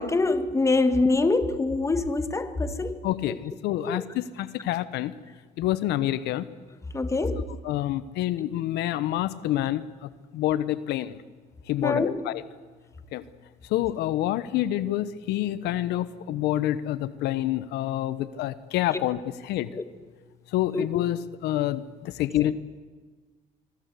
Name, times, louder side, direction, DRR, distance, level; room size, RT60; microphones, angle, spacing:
voice 1, 0.0-3.0 3.9-4.0 6.9-7.4 11.8-12.2 19.7-19.8 20.7-20.9, left 3 dB, 15° left, 1.7 m, -24 dB
voice 2, 3.0-5.1 5.6-6.5 7.4-11.2 11.7-12.4 13.1-13.2 13.7-19.7 20.5-22.5, left 13 dB, 85° left, 1.0 m, -27 dB
26.0 x 22.5 x 8.3 m
cardioid pair, 110°, 17 cm